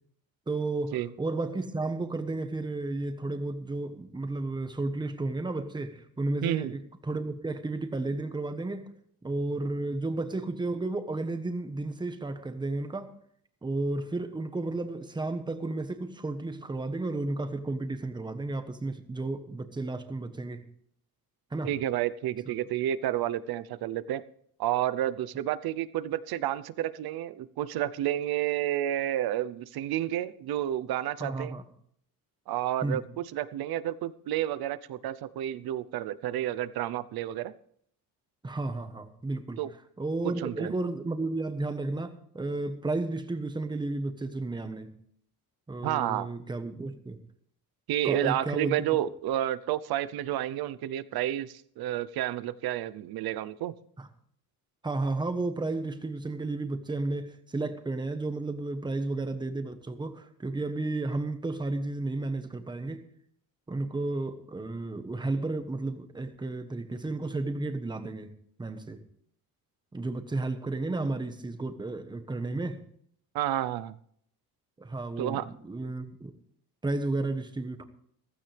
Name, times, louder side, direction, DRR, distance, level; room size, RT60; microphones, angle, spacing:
voice 1, 0.5-8.9 9.2-13.1 13.6-20.6 21.5-21.7 22.5-22.6 31.2-31.6 32.8-33.0 38.4-39.6 40.0-45.0 45.7-47.2 48.0-48.8 54.0-54.1 54.8-63.0 63.7-68.3 68.6-69.0 69.9-72.8 74.8-76.3 76.8-77.8, right 2 dB, 10° right, 8 dB, 1.2 m, -33 dB
voice 2, 6.4-6.7 21.6-24.2 24.6-31.5 32.5-37.5 39.6-39.7 40.2-40.7 45.8-46.3 47.9-53.7 73.3-74.0 75.2-75.4, right 12 dB, 85° right, 15 dB, 0.8 m, -30 dB
15.5 x 15.5 x 3.4 m, 0.65 s
cardioid pair, 175°, 36 cm